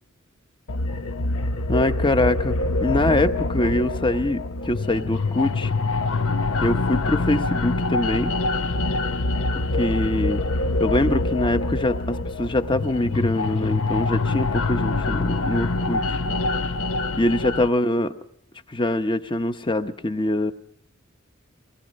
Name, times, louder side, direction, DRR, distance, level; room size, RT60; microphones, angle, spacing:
sound 1, 0.7-17.7, left 2 dB, 85° left, 0.9 m, -25 dB
voice 1, 1.7-5.7 6.6-8.3 9.5-10.4 10.8-16.2 17.2-18.1 18.7-20.5, left 1 dB, 25° left, 9 dB, 1.0 m, -24 dB
24.0 x 20.5 x 5.3 m, 0.71 s
head